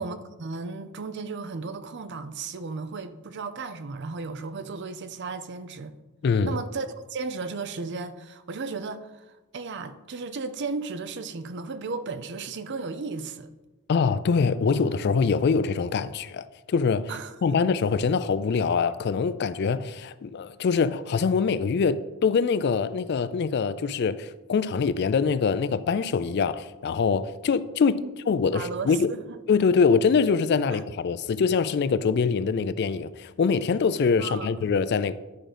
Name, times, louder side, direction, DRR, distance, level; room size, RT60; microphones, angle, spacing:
voice 1, 0.0-5.9 6.4-13.5 17.1-17.6 28.0-28.1 28.5-29.4 30.7-30.8 34.2-34.5, right 4 dB, 50° right, 0.5 m, -35 dB
voice 2, 6.2-6.6 13.9-17.1 17.4-29.1 29.5-35.1, left 5 dB, 50° left, 0.3 m, -24 dB
11.0 x 3.7 x 5.1 m
head